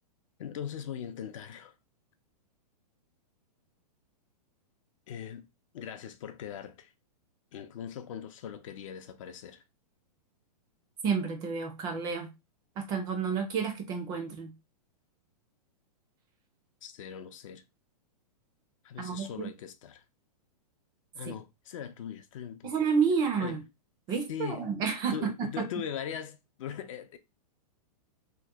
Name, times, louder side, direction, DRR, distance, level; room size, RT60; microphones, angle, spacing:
voice 1, 0.4-1.8 5.1-5.5 5.7-6.9 7.5-9.6 16.8-17.6 18.8-20.0 21.1-22.7 23.4-23.6 24.3-24.8 25.1-27.2, left 8 dB, 55° left, 0.5 m, -40 dB
voice 2, 11.0-12.3 12.8-14.5 19.0-19.5 21.3-21.4 22.6-23.6 24.1-25.3, right 6 dB, 20° right, 0.4 m, -30 dB
2.9 x 2.1 x 3.4 m
hypercardioid pair, 155°, 20 cm